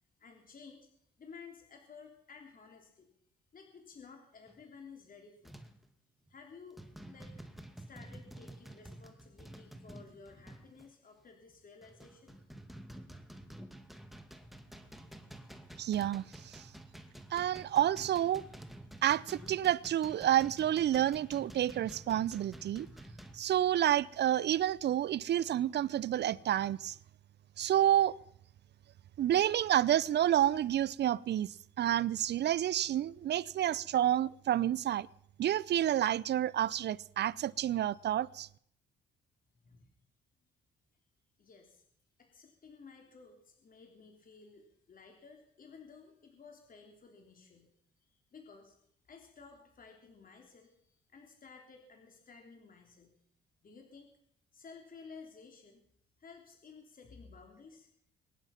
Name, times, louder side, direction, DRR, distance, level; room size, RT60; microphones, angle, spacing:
voice 1, 0.2-0.9 1.2-3.1 3.5-5.6 6.3-7.4 7.8-12.5 39.5-39.9 41.4-41.8 42.2-47.7 48.0-48.8 49.0-53.2 53.6-54.1 54.5-55.8 56.2-57.9, left 5 dB, 45° left, 3.3 m, -55 dB
sound 1, 4.5-4.7 5.4-5.9 6.3-6.5 6.8-10.9 11.5-23.4, right 1 dB, ahead, 2.0 m, -51 dB
voice 2, 15.8-16.6 17.3-18.4 19.0-22.9 23.3-27.0 27.6-28.1 29.2-35.1 35.4-38.5, right 11 dB, 60° right, 0.6 m, -29 dB
23.0 x 10.5 x 5.8 m
cardioid pair, 90°, 20 cm